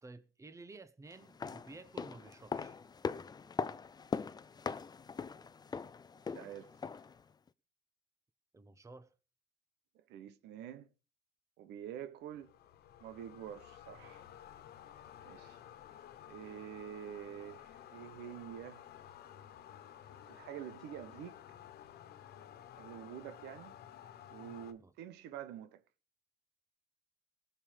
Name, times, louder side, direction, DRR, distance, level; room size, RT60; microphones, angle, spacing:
voice 1, 0.0-2.8 8.5-9.1 24.8-24.9, right 3 dB, 20° right, 1.0 m, -53 dB
sound 1, 1.2-7.2 7.5-7.6, left 5 dB, 25° left, 0.6 m, -41 dB
voice 2, 6.3-6.7 10.1-10.9 11.6-12.5 13.0-14.2 15.2-15.6 16.3-18.9 20.3-21.4 22.8-23.8 24.3-25.8, right 10 dB, 85° right, 1.0 m, -47 dB
sound 2, 12.2-24.7, left 10 dB, 70° left, 1.4 m, -54 dB
18.5 x 7.1 x 5.2 m
cardioid pair, 110°, 17 cm